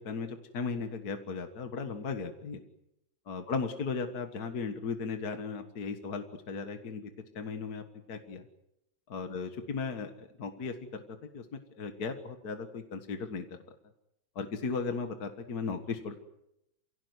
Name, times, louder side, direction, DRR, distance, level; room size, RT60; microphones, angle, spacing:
voice 1, 0.0-2.6 3.3-8.5 9.1-11.0 11.3-11.5 11.8-13.6 14.4-16.2, left 4 dB, 55° left, 6 dB, 2.1 m, -36 dB
28.0 x 17.5 x 9.5 m, 0.85 s
omnidirectional pair, 2.1 m